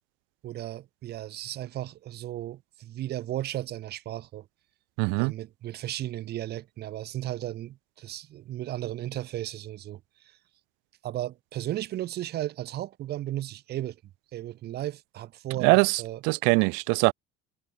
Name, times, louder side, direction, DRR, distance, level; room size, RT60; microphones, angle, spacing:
voice 1, 0.4-4.5 5.2-10.4 11.0-14.0 14.3-16.2, right 13 dB, 60° right, 6.8 m, -35 dB
voice 2, 5.0-5.3 15.6-17.1, right 33 dB, 80° right, 0.8 m, -22 dB
supercardioid pair, 100°, 19 cm